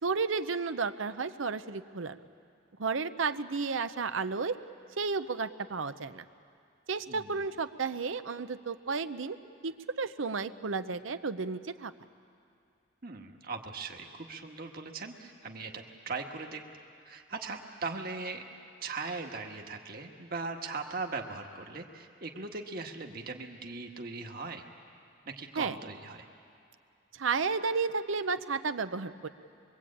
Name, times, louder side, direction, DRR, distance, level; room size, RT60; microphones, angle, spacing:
voice 1, 0.0-2.2 2.8-4.6 5.0-6.3 6.9-9.4 9.6-11.9 25.6-25.8 27.2-29.3, right 4 dB, 90° right, 11 dB, 0.8 m, -32 dB
voice 2, 7.1-7.4 13.0-16.6 17.0-18.4 18.8-24.7 25.2-26.3, right 4 dB, 50° right, 2 dB, 1.7 m, -39 dB
24.0 x 23.5 x 8.7 m, 2.5 s
head